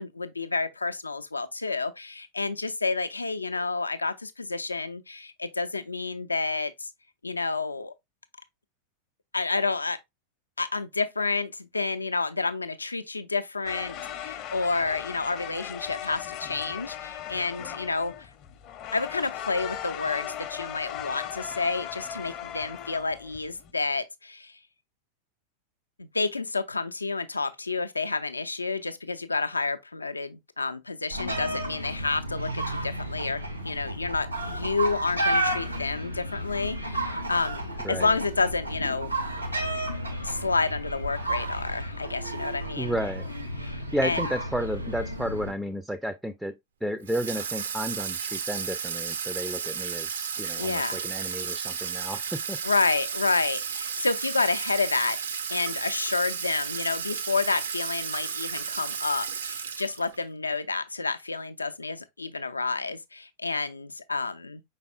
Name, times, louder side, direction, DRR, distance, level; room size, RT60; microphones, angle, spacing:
voice 1, 0.0-6.9 7.2-7.9 9.3-10.0 10.6-18.3 18.9-24.5 26.0-37.6 37.9-39.1 40.2-43.0 43.6-44.3 50.6-51.0 52.6-64.6, left 3 dB, 80° left, 0.4 m, -29 dB
sound 1, 13.6-23.7, left 10 dB, 40° left, 0.6 m, -38 dB
sound 2, 31.1-45.5, right 1 dB, 85° right, 0.8 m, -32 dB
voice 2, 42.8-43.3 43.9-46.6 46.8-52.6, equal, ahead, 0.3 m, -32 dB
Water tap faucet / Sink (filling or washing), 47.1-60.2, right 7 dB, 65° right, 0.5 m, -33 dB
5.2 x 4.0 x 2.3 m
figure-of-eight pair, 90°, 0 cm